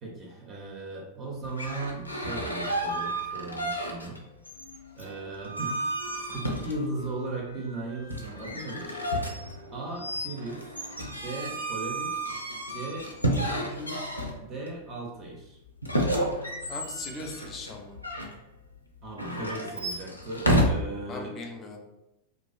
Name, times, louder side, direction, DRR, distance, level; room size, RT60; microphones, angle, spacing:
voice 1, 0.0-4.2 4.9-5.8 6.3-9.2 9.7-10.8 11.2-12.2 12.7-14.0 14.4-15.6 19.0-21.4, right 2 dB, 30° right, -1 dB, 0.5 m, -37 dB
sound 1, 1.4-4.2 4.4-7.1 8.1-14.7 15.8-18.3 19.1-20.6, equal, 85° left, 0.4 m, -31 dB
Wind instrument woodwind instrument, 4.5-12.1, left 1 dB, 80° right, 0.4 m, -49 dB
voice 2, 16.7-18.0 21.1-21.8, left 2 dB, 25° left, 2 dB, 0.5 m, -39 dB
2.4 x 2.3 x 2.3 m, 0.92 s
figure-of-eight pair, 90°, 0 cm